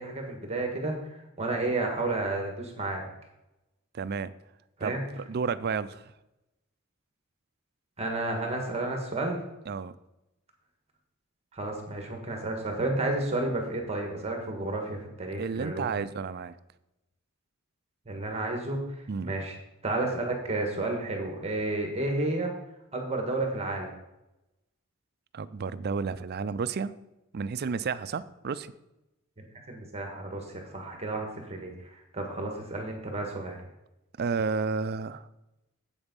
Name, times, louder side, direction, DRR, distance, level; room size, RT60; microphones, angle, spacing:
voice 1, 0.0-3.1 4.8-5.0 8.0-9.4 11.5-16.0 18.0-19.5 19.8-22.5 22.9-23.9 29.4-33.6, right 2 dB, 30° right, 2 dB, 1.6 m, -32 dB
voice 2, 3.9-4.3 4.8-5.0 5.3-6.1 9.7-9.9 15.4-16.6 19.1-19.3 25.3-26.9 27.3-28.7 34.2-35.3, right 5 dB, 50° right, 15 dB, 0.4 m, -31 dB
8.1 x 7.1 x 5.3 m, 0.93 s
head